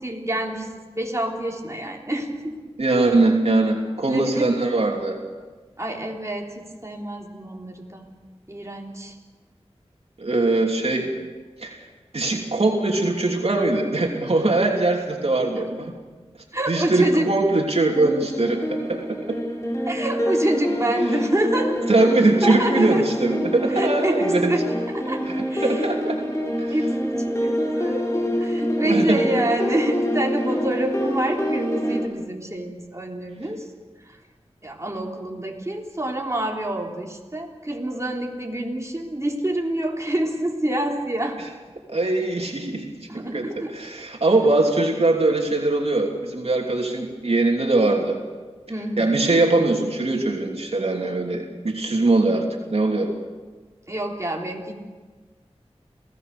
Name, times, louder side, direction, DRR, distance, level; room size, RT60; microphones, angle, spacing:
voice 1, 0.0-2.6 4.0-4.5 5.8-8.1 8.5-9.1 15.6-15.9 16.5-17.3 19.9-21.8 22.4-23.1 23.7-24.6 24.9-25.2 25.5-25.8 26.7-28.1 28.4-33.6 34.1-34.2 34.6-41.4 43.1-43.7 48.7-49.2 53.9-54.7, right 1 dB, 25° right, -1 dB, 3.6 m, -27 dB
voice 2, 2.8-5.2 10.2-11.1 11.6-11.8 12.1-15.9 16.7-19.4 21.9-24.6 25.3-26.2 26.6-26.7 28.8-29.4 41.4-41.5 41.9-42.9 43.3-48.2 49.0-53.1, right 2 dB, 70° right, 0 dB, 3.1 m, -21 dB
sound 1, 17.9-32.1, equal, 25° left, 5.0 m, -26 dB
27.0 x 17.5 x 6.9 m, 1.4 s
wide cardioid pair, 50°, 11 cm